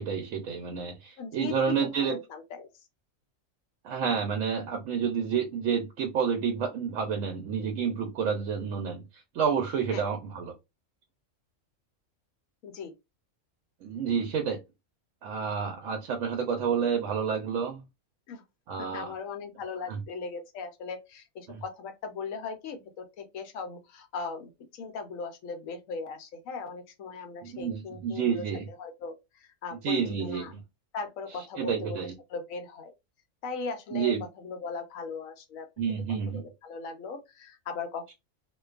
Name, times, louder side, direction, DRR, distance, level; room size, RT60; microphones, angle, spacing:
voice 1, 0.0-2.2 3.8-9.0 9.3-10.5 13.8-14.6 15.2-17.8 18.7-19.1 19.9-20.0 21.5-21.6 27.4-28.7 29.8-30.6 31.6-32.1 33.9-34.2 35.8-36.4, right 6 dB, 75° right, 0.9 m, -29 dB
voice 2, 1.2-2.7 9.9-10.0 12.6-12.9 18.3-18.4 18.8-30.5 30.9-32.0 32.3-32.9 33.4-35.7 36.3-38.1, left 5 dB, 80° left, 1.0 m, -38 dB
2.5 x 2.2 x 2.3 m
omnidirectional pair, 1.4 m